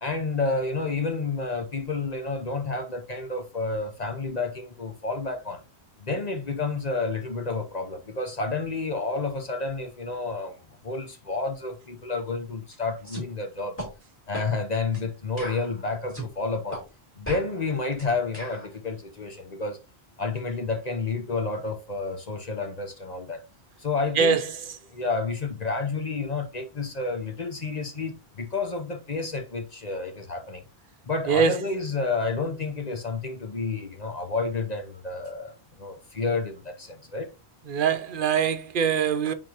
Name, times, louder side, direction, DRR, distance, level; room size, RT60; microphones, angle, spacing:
voice 1, 0.0-5.6 6.0-10.6 10.8-13.8 14.3-16.8 17.2-19.8 20.2-23.4 23.8-24.4 24.9-30.6 31.0-37.3, left 3 dB, 40° left, 0.9 m, -30 dB
sound 1, 13.0-13.3 13.8-13.9 14.3-14.5 14.9-15.1 15.4-16.3 16.7-16.8 17.2-18.7, right 1 dB, 10° left, 4.0 m, -37 dB
voice 2, 24.2-24.6 31.3-31.6 37.6-39.3, right 6 dB, 55° right, 0.8 m, -23 dB
9.9 x 3.9 x 2.9 m
omnidirectional pair, 1.1 m